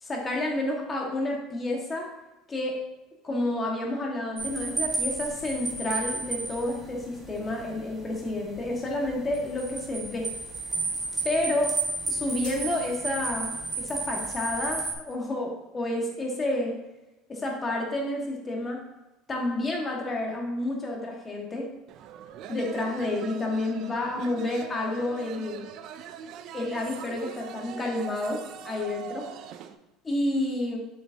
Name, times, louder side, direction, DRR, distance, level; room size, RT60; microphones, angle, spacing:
voice 1, 0.0-2.1 2.5-2.8 3.2-10.3 11.2-11.7 12.1-16.8 17.3-18.8 19.3-21.7 22.5-25.6 26.5-29.3 30.0-30.8, left 1 dB, 20° left, -1 dB, 1.8 m, -30 dB
sound 1, 4.4-14.9, right 3 dB, 15° right, 1.7 m, -33 dB
sound 2, 12.4-13.5, right 4 dB, 75° right, 2.5 m, -47 dB
sound 3, 21.9-29.7, right 9 dB, 55° right, 0.5 m, -42 dB
7.2 x 6.4 x 2.9 m, 1.0 s
supercardioid pair, 125°, 0 cm